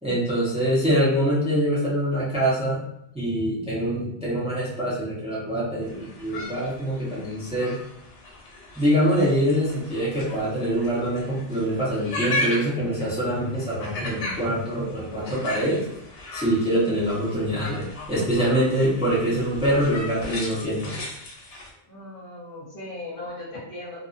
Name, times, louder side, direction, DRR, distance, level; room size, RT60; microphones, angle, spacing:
voice 1, 0.0-2.8 3.1-7.8 8.7-15.9 16.3-20.9, equal, 5° right, -8 dB, 0.7 m, -24 dB
sound 1, 5.8-21.7, left 2 dB, 85° left, 1.0 m, -36 dB
voice 2, 21.9-24.0, left 2 dB, 55° left, -5 dB, 0.9 m, -37 dB
2.5 x 2.4 x 2.4 m, 0.74 s
omnidirectional pair, 1.2 m